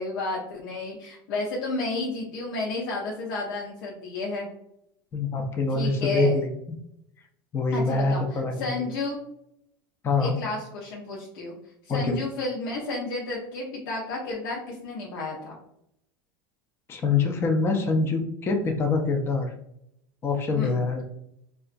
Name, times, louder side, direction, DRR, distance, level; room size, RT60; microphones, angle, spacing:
voice 1, 0.0-4.5 5.7-6.4 7.7-9.2 10.2-11.5 11.8-15.6 20.5-20.8, left 2 dB, 75° left, -3 dB, 0.7 m, -32 dB
voice 2, 5.1-6.5 7.5-8.9 10.0-10.3 11.9-12.2 16.9-19.5 20.2-21.0, left 3 dB, 20° left, 3 dB, 0.4 m, -25 dB
2.8 x 2.3 x 2.5 m, 0.76 s
supercardioid pair, 135°, 12 cm